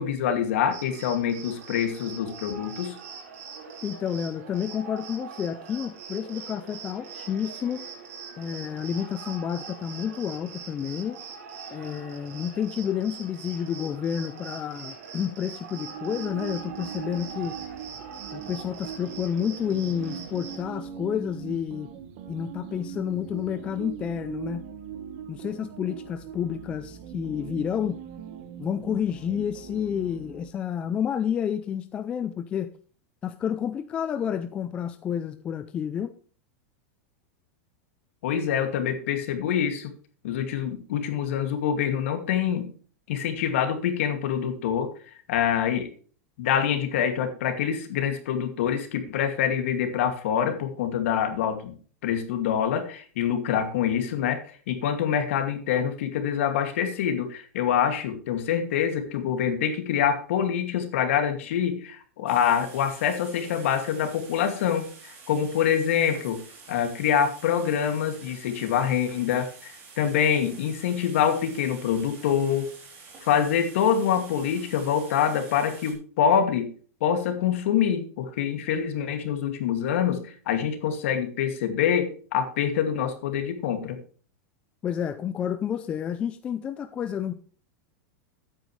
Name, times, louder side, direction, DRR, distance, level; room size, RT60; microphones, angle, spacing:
voice 1, 0.0-3.0 38.2-39.9 40.2-42.7 43.1-44.9 45.3-45.9 46.4-51.8 52.0-54.4 54.7-66.4 66.7-72.7 73.2-76.7 77.0-84.0, left 8 dB, 60° left, 7 dB, 2.3 m, -25 dB
Cricket, 0.7-20.6, right 6 dB, 80° right, 4.4 m, -42 dB
voice 2, 3.8-7.9 8.4-11.2 11.7-17.6 18.3-21.9 22.3-24.7 25.3-28.0 28.6-32.7 33.2-36.1 84.8-87.3, left 8 dB, 15° left, 11 dB, 0.4 m, -30 dB
sound 1, 15.7-30.5, right 8 dB, 45° right, 1.3 m, -40 dB
sound 2, 62.3-75.9, right 4 dB, 25° right, 3.3 m, -48 dB
13.0 x 9.1 x 3.2 m, 0.42 s
supercardioid pair, 180°, 8 cm